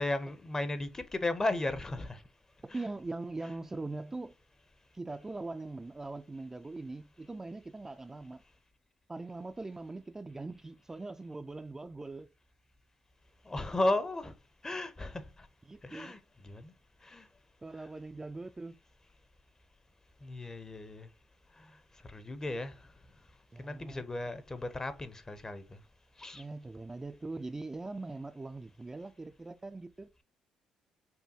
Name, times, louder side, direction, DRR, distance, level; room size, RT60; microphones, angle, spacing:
voice 1, 0.0-2.2 2.7-2.8 13.4-14.3 14.6-15.5 15.8-16.7 17.0-17.3 20.2-21.1 21.5-23.3 23.6-25.8 26.2-26.4, left 2 dB, 25° left, 0.7 m, -35 dB
voice 2, 2.7-4.4 4.9-8.4 9.1-12.3 15.7-16.2 17.6-18.8 23.5-24.0 26.3-30.2, right 3 dB, 20° right, 0.3 m, -41 dB
5.4 x 2.2 x 2.7 m
hypercardioid pair, 55°, 2 cm